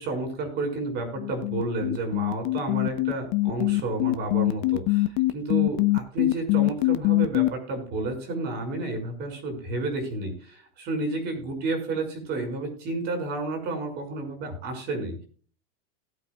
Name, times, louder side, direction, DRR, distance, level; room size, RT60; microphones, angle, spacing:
voice 1, 0.0-15.2, right 2 dB, 35° right, 4 dB, 5.6 m, -31 dB
sound 1, 1.2-7.5, left 20 dB, 45° left, 1.0 m, -22 dB
20.0 x 8.3 x 2.4 m, 0.43 s
supercardioid pair, 170°, 31 cm